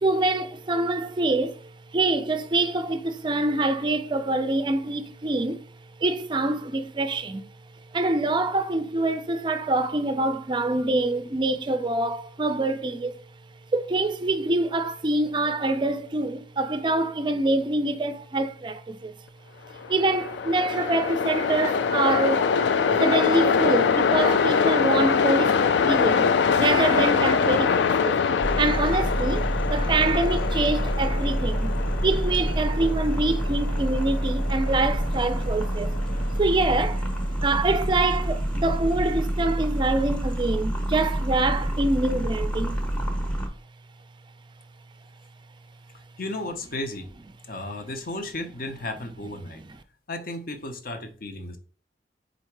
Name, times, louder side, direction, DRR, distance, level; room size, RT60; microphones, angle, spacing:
voice 1, 0.0-5.6 6.0-7.5 7.9-13.1 13.7-19.1 19.9-22.5 23.0-28.2 28.6-31.7 32.0-35.9 36.4-37.0 37.4-42.8, right 2 dB, 25° right, 0.4 m, -25 dB
Train, 19.8-37.0, left 6 dB, 75° left, 0.3 m, -24 dB
sound 1, 28.4-43.5, right 1 dB, 5° left, 0.8 m, -27 dB
voice 2, 46.2-47.1 47.4-49.6 50.1-51.6, left 2 dB, 55° left, 0.7 m, -34 dB
3.9 x 2.8 x 4.5 m
head